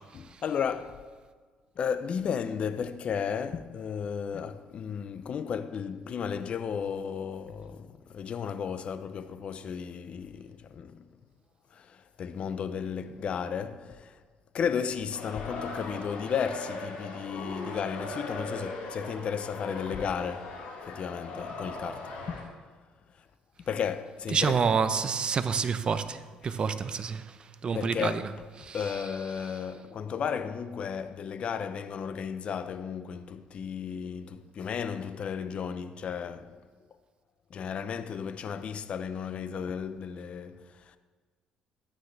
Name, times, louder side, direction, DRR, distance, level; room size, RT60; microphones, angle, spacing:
voice 1, 0.1-1.0 1.8-11.1 11.7-14.2 14.5-20.5 20.8-22.4 23.7-24.8 26.4-26.6 27.7-28.2 28.6-36.6 37.5-41.0, left 7 dB, 50° left, 0.6 m, -34 dB
sound 1, 15.1-22.4, left 2 dB, 80° left, 2.4 m, -39 dB
voice 2, 24.3-26.2 26.4-27.2 27.6-28.1 28.7-28.8, right 6 dB, 35° right, 0.6 m, -27 dB
13.0 x 9.4 x 3.3 m
cardioid pair, 105°, 3 cm